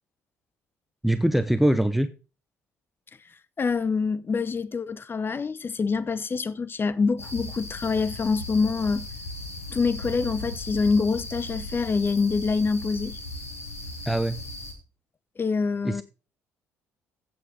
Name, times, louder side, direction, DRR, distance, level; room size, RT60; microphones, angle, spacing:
voice 1, 1.0-2.1 14.1-14.4 15.8-16.0, right 1 dB, ahead, 0.9 m, -22 dB
voice 2, 3.6-9.1 9.7-13.2 15.4-16.0, left 4 dB, 30° left, 0.7 m, -25 dB
sound 1, 7.2-14.7, left 1 dB, 90° left, 1.7 m, -37 dB
15.5 x 5.8 x 5.1 m
figure-of-eight pair, 50°, 7 cm